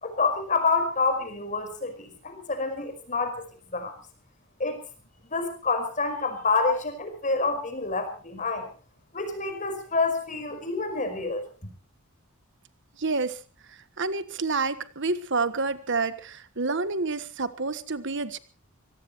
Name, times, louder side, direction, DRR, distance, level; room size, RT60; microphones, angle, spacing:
voice 1, 0.0-3.9 4.6-4.8 5.3-8.7 9.1-11.5, left 4 dB, 35° left, 8 dB, 5.0 m, -28 dB
voice 2, 13.0-13.4 14.0-18.4, right 3 dB, 55° right, 13 dB, 1.4 m, -28 dB
24.5 x 18.5 x 3.1 m, 0.36 s
head